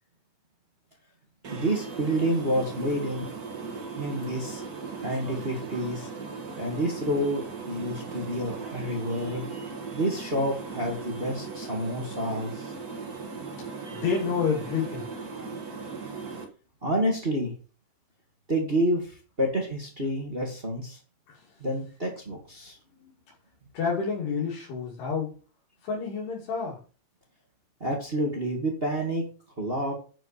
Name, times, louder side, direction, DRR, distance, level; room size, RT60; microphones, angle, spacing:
sound 1, 1.4-16.4, right 4 dB, 60° right, 0.9 m, -38 dB
voice 1, 1.5-3.3 4.0-4.6 5.0-6.1 6.6-12.7 13.8-14.0 16.8-17.5 18.5-21.0 21.6-22.8 23.0-23.1 27.8-29.3 29.6-29.9, equal, 30° right, 0 dB, 1.1 m, -29 dB
voice 2, 13.9-15.1 21.3-21.4 23.7-25.3 25.8-26.8, left 5 dB, 75° left, -4 dB, 4.7 m, -29 dB
10.5 x 6.0 x 4.3 m, 0.36 s
omnidirectional pair, 4.8 m